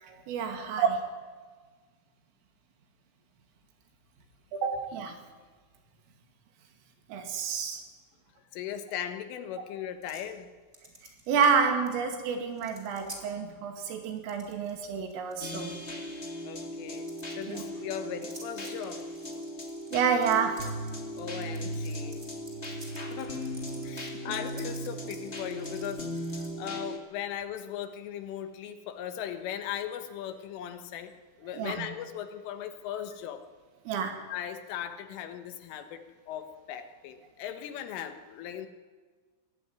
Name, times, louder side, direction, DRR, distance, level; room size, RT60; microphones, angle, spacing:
voice 1, 0.1-1.1 4.5-5.2 7.1-7.8 11.3-15.8 17.5-17.6 19.9-20.7 24.0-24.1 31.5-31.9 33.9-34.2, right 6 dB, 75° right, 5 dB, 5.0 m, -29 dB
voice 2, 8.5-10.5 16.4-19.0 21.2-22.3 23.1-23.5 23.8-31.1 31.4-33.4 34.3-36.0 36.3-38.7, left 9 dB, 75° left, 8 dB, 3.8 m, -38 dB
sound 1, 10.0-10.3 10.7-11.9 12.1-12.2 12.5-13.2 14.1-14.8 15.1-15.9 16.9-17.4 18.2-26.5, right 1 dB, 15° right, 3.0 m, -50 dB
sound 2, 15.4-27.0, equal, 40° left, 0.9 m, -37 dB
24.5 x 16.5 x 9.5 m, 1.4 s
omnidirectional pair, 5.9 m